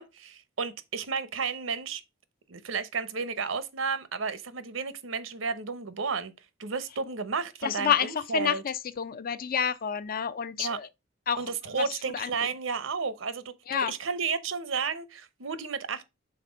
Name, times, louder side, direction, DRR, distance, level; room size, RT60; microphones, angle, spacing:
voice 1, 0.0-2.0 2.5-6.3 6.6-8.6 10.6-10.8 11.4-16.0, right 5 dB, 80° right, 0.9 m, -32 dB
voice 2, 7.6-10.9 11.3-11.4 11.8-11.9 12.1-12.3 13.7-13.9, left 8 dB, 50° left, 0.5 m, -29 dB
5.9 x 4.1 x 5.1 m
head